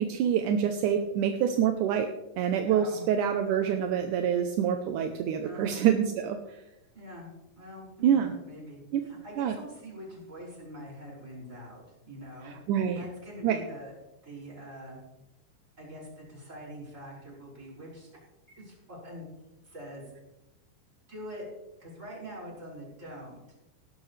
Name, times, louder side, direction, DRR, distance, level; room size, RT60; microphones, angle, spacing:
voice 1, 0.0-2.1 2.4-6.6 8.0-8.3 8.9-9.0 9.4-9.6 12.5-13.0 13.4-13.6, right 9 dB, 75° right, 6 dB, 1.9 m, -26 dB
voice 2, 2.6-3.3 5.4-5.7 6.9-7.3 7.6-12.5 12.9-13.9 14.2-15.0 15.8-18.1 18.5-19.3 19.6-20.0 21.1-21.4 21.8-23.4, equal, 20° right, -5 dB, 6.2 m, -44 dB
17.5 x 12.0 x 3.3 m, 0.94 s
omnidirectional pair, 4.4 m